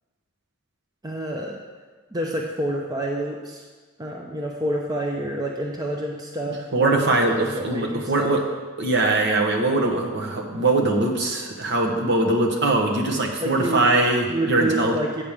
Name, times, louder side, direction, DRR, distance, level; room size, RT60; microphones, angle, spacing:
voice 1, 1.0-1.6 2.1-3.6 4.0-8.4 13.4-13.8 14.3-15.2, right 1 dB, 15° right, -1 dB, 0.6 m, -28 dB
voice 2, 6.7-8.4 8.8-14.9, right 2 dB, 55° right, 1 dB, 1.2 m, -21 dB
8.5 x 5.2 x 7.3 m, 1.4 s
head